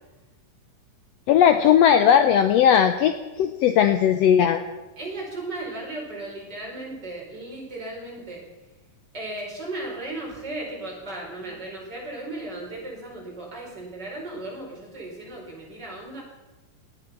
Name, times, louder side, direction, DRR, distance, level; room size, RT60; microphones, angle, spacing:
voice 1, 1.3-4.6, left 9 dB, 85° left, 9 dB, 1.4 m, -18 dB
voice 2, 5.0-8.4 9.1-16.2, right 2 dB, 30° right, -2 dB, 5.4 m, -36 dB
19.0 x 12.5 x 5.9 m, 1.1 s
omnidirectional pair, 3.8 m